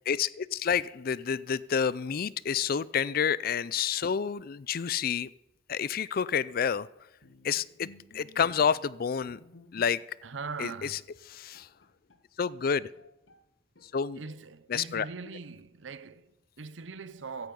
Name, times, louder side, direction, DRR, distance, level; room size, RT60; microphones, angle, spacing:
voice 1, 0.1-5.3 5.7-6.9 7.4-7.9 8.1-9.4 9.7-10.0 10.6-10.9 11.3-11.7 12.4-12.9 13.8-14.2 14.7-15.1, left 7 dB, 50° left, 0.4 m, -29 dB
Bowed string instrument, 7.2-10.3 10.6-10.8 11.2-11.3 11.5-13.5 13.8-14.6 15.2-15.8, left 2 dB, 85° left, 1.4 m, -57 dB
voice 2, 10.2-11.1 14.1-17.5, right 4 dB, 85° right, 0.7 m, -41 dB
15.5 x 11.0 x 5.4 m
head